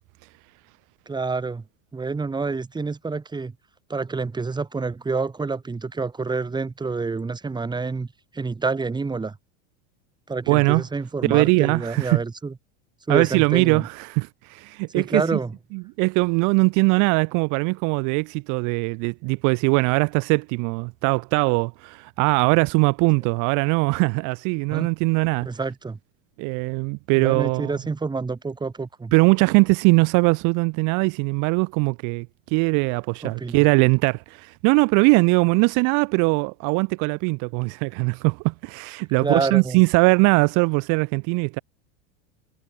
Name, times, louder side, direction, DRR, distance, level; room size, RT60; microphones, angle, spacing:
voice 1, 1.1-1.6 1.9-3.5 3.9-8.1 8.3-9.4 10.3-12.5 13.1-13.8 15.0-15.5 24.7-24.9 25.5-26.0 27.2-29.1 33.2-33.7 39.2-39.8, right 4 dB, 10° right, 7.3 m, -28 dB
voice 2, 10.5-10.8 11.2-12.2 13.1-15.2 15.7-25.5 26.4-27.7 29.1-41.6, right 32 dB, 55° right, 3.7 m, -21 dB
supercardioid pair, 140°, 37 cm